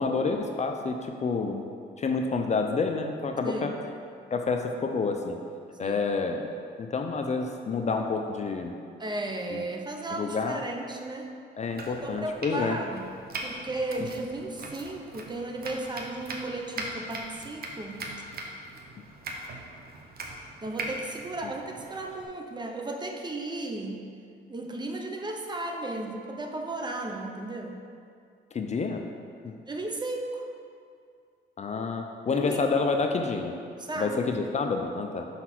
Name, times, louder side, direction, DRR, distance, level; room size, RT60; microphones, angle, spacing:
voice 1, 0.0-1.7 2.0-3.7 4.3-5.4 5.8-6.5 6.8-8.7 9.5-9.7 10.1-10.6 11.6-12.8 21.4-21.5 28.5-29.0 29.4-29.5 31.6-33.6 34.0-35.3, left 4 dB, 35° left, 4 dB, 0.5 m, -28 dB
voice 2, 3.4-3.7 5.8-6.0 9.0-11.3 11.9-13.1 13.4-18.1 20.6-24.0 24.5-27.8 29.7-30.5 32.3-32.6 33.8-34.3, right 2 dB, 20° right, 2 dB, 0.7 m, -35 dB
Domestic sounds home sounds, 11.6-22.3, right 2 dB, 50° right, 0.9 m, -40 dB
5.4 x 4.1 x 5.9 m, 2.3 s
cardioid pair, 90°, 20 cm